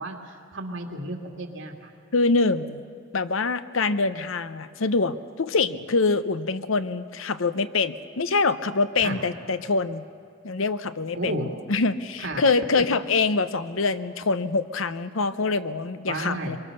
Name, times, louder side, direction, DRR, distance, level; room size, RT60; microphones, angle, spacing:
voice 1, 0.0-1.9 9.0-9.2 11.1-11.5 12.2-12.4 12.8-12.9 16.1-16.6, right 1 dB, 70° right, 2 dB, 2.6 m, -33 dB
voice 2, 2.1-2.8 3.1-10.0 10.4-16.6, left 3 dB, 85° left, 12 dB, 0.8 m, -25 dB
24.0 x 23.0 x 6.8 m, 2.3 s
head